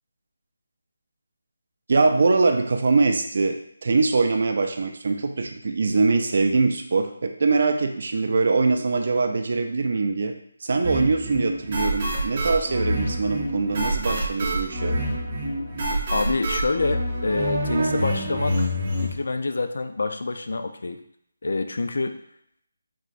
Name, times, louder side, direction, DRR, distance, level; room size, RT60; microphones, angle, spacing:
voice 1, 1.9-10.3 10.6-15.0, right 3 dB, 45° right, 5 dB, 0.4 m, -22 dB
sound 1, 10.8-19.1, right 1 dB, 25° right, 0.8 m, -26 dB
voice 2, 16.1-18.7 19.0-21.0 21.4-22.2, left 3 dB, 65° left, 8 dB, 0.3 m, -27 dB
3.6 x 3.1 x 2.5 m, 0.70 s
hypercardioid pair, 175°, 0 cm